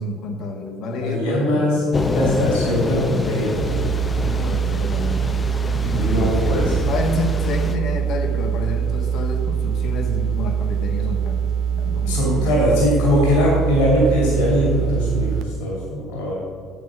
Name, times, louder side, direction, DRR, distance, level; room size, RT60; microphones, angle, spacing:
voice 1, 0.0-1.7 4.1-5.4 5.8-12.6, left 1 dB, 55° left, 3 dB, 1.4 m, -29 dB
voice 2, 1.0-1.8 2.1-3.6 5.9-6.6 12.0-16.4, equal, 75° left, -3 dB, 2.6 m, -20 dB
Thunder / Rain, 1.9-7.7, left 2 dB, 25° left, 0.8 m, -26 dB
sound 1, 3.6-15.4, right 8 dB, 65° right, 0.6 m, -23 dB
8.4 x 6.9 x 5.9 m, 2.2 s
hypercardioid pair, 60°, 0 cm